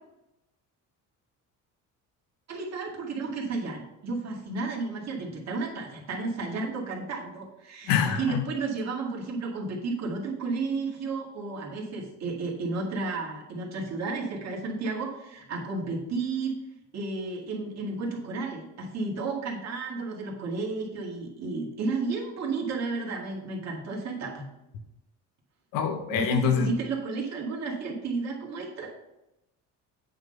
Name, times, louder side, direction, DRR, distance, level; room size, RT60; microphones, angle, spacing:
voice 1, 2.5-16.6 16.9-24.4 26.1-28.9, right 3 dB, 50° right, -1 dB, 2.0 m, -32 dB
voice 2, 7.9-8.4 25.7-26.7, left 7 dB, 90° left, 7 dB, 1.2 m, -25 dB
8.7 x 3.9 x 5.3 m, 0.89 s
cardioid pair, 145°, 33 cm